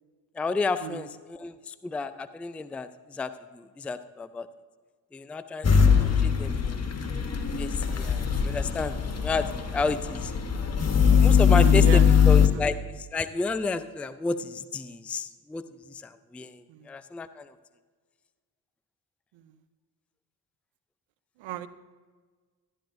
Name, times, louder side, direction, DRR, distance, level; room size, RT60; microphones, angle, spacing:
voice 1, 0.4-2.9 3.1-4.5 5.1-5.7 6.2-6.8 7.6-9.0 9.2-10.3 11.1-12.7 13.1-15.6 16.0-16.6 16.9-17.4, left 3 dB, 5° left, 12 dB, 0.4 m, -31 dB
sound 1, 5.6-12.5, left 7 dB, 30° left, 1.3 m, -21 dB
voice 2, 11.5-12.6 16.7-16.9 21.4-21.7, right 8 dB, 70° right, 13 dB, 0.7 m, -33 dB
13.0 x 10.0 x 2.6 m, 1.5 s
hypercardioid pair, 40°, 49 cm